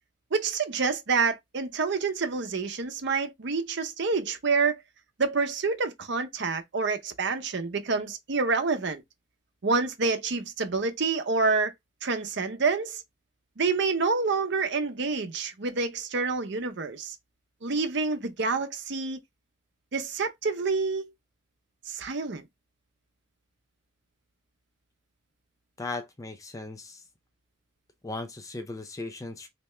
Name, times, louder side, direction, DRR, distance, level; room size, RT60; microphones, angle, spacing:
voice 1, 0.3-4.8 5.2-9.0 9.6-11.7 12.0-13.0 13.6-17.2 17.6-19.2 19.9-21.1 21.9-22.4, right 4 dB, 60° right, 0.7 m, -27 dB
voice 2, 25.8-27.0 28.0-29.5, left 3 dB, 15° left, 0.4 m, -37 dB
3.3 x 2.8 x 3.2 m
head